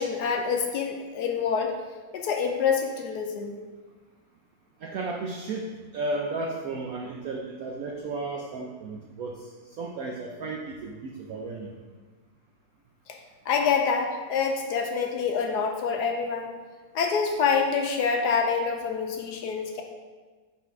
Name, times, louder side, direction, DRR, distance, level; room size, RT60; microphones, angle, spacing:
voice 1, 0.0-1.7 2.1-3.6 13.5-16.5 16.9-19.8, left 5 dB, 75° left, 3 dB, 1.0 m, -26 dB
voice 2, 4.8-9.5 9.8-11.7, right 3 dB, 75° right, 0 dB, 0.8 m, -34 dB
6.1 x 4.1 x 4.6 m, 1.4 s
omnidirectional pair, 2.1 m